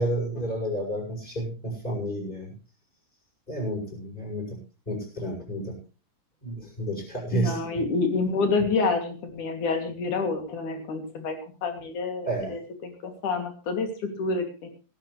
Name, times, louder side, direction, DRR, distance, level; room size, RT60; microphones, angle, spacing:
voice 1, 0.0-2.5 3.5-4.6 4.9-5.8 6.4-7.6 12.2-12.6, right 1 dB, 15° left, 0 dB, 7.6 m, -30 dB
voice 2, 7.3-11.4 11.6-14.7, left 4 dB, 65° left, 6 dB, 4.3 m, -28 dB
17.5 x 14.0 x 3.3 m, 0.33 s
omnidirectional pair, 3.8 m